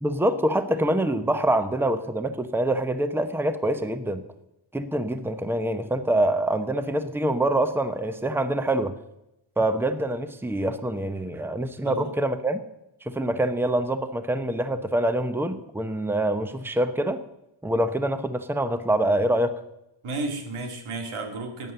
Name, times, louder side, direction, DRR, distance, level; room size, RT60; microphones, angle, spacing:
voice 1, 0.0-4.2 4.7-8.9 9.6-12.6 13.0-17.2 17.6-19.5, right 1 dB, 5° right, 10 dB, 0.9 m, -25 dB
voice 2, 20.0-21.7, right 2 dB, 85° right, 4 dB, 2.5 m, -32 dB
12.5 x 9.4 x 6.9 m, 0.87 s
cardioid pair, 85°, 48 cm